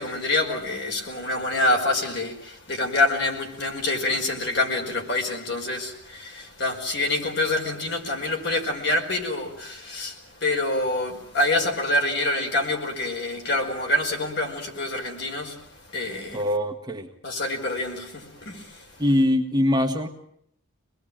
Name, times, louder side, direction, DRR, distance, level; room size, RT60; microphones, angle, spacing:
voice 1, 0.0-16.4 17.2-19.0, left 2 dB, 50° left, 5.2 m, -26 dB
voice 2, 16.3-17.1 19.0-20.1, left 1 dB, 20° right, 1.6 m, -22 dB
25.5 x 20.5 x 8.9 m
head